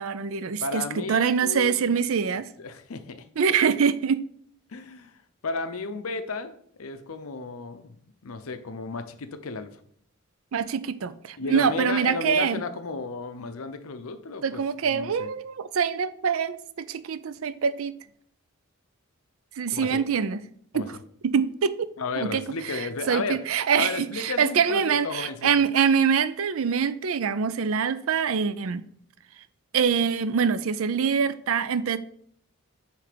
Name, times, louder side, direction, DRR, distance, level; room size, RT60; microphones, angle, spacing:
voice 1, 0.0-2.5 3.4-4.2 10.5-12.6 14.4-17.9 19.6-20.4 20.7-21.0 21.2-21.9 22.2-28.8 29.7-32.0, right 6 dB, 70° right, 0.4 m, -25 dB
voice 2, 0.6-2.0 2.6-3.3 4.7-6.5 6.8-8.0 8.2-9.7 11.4-15.3 19.7-20.0 20.7-20.9 22.0-23.4 23.7-25.7, left 4 dB, 75° left, 0.7 m, -33 dB
8.5 x 3.3 x 5.1 m
head